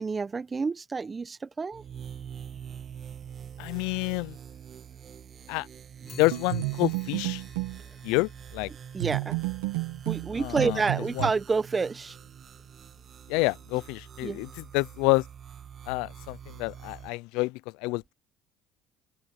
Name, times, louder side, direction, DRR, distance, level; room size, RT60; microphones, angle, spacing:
voice 1, 0.0-1.8 8.9-9.4 10.0-12.2 14.2-14.5, right 4 dB, 30° right, 1.2 m, -29 dB
sound 1, 1.7-17.1, right 8 dB, 45° right, 1.8 m, -45 dB
voice 2, 3.6-4.4 5.5-5.7 6.2-7.4 8.0-8.7 10.4-10.8 11.2-11.3 13.3-14.5 14.7-15.2 15.9-18.1, left 25 dB, 80° left, 0.5 m, -28 dB
Clock, 6.1-15.4, left 8 dB, 45° left, 7.2 m, -57 dB
sound 2, 6.3-7.8 9.0-11.3, right 22 dB, 90° right, 1.7 m, -31 dB
open air
supercardioid pair, 80°, 0 cm